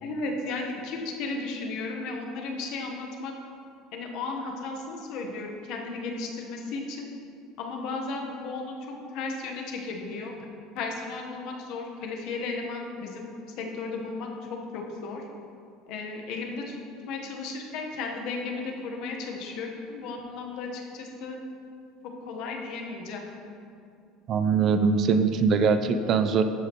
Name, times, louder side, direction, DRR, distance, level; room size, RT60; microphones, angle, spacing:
voice 1, 0.0-3.3 3.9-7.1 7.6-10.3 10.7-15.2 15.9-16.8 17.1-21.4 22.2-23.2, left 3 dB, 60° left, 2 dB, 1.0 m, -34 dB
voice 2, 24.3-26.5, right 5 dB, 40° right, 9 dB, 0.3 m, -22 dB
12.5 x 4.9 x 3.0 m, 2.5 s
cardioid pair, 140°, 0 cm